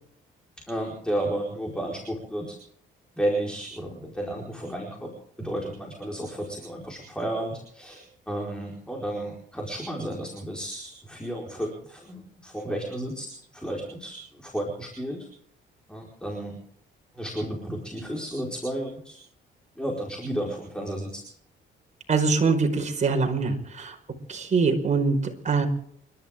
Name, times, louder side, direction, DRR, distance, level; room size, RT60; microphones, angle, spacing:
voice 1, 0.7-2.6 3.2-15.3 15.9-16.6 17.1-19.2 19.8-21.2, right 1 dB, 5° left, -1 dB, 4.6 m, -32 dB
voice 2, 22.1-23.9 24.3-25.7, right 4 dB, 35° right, 3 dB, 4.9 m, -23 dB
29.5 x 12.5 x 3.7 m, 0.67 s
cardioid pair, 90°, 20 cm